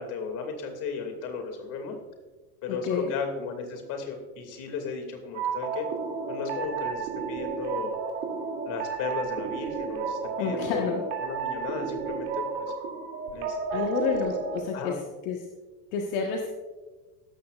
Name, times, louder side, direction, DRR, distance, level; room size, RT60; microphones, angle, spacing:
voice 1, 0.0-2.0 2.6-5.9 6.3-8.0 8.6-12.7 13.3-13.9 14.7-15.0, left 5 dB, 40° left, 4 dB, 2.5 m, -35 dB
sound 1, 5.3-14.6, right 5 dB, 65° right, 2.8 m, -32 dB
voice 2, 10.4-11.0 13.7-15.0 15.2-15.4 15.9-16.5, left 5 dB, 60° left, 1 dB, 1.5 m, -29 dB
16.0 x 13.5 x 2.5 m, 1.2 s
supercardioid pair, 165°, 47 cm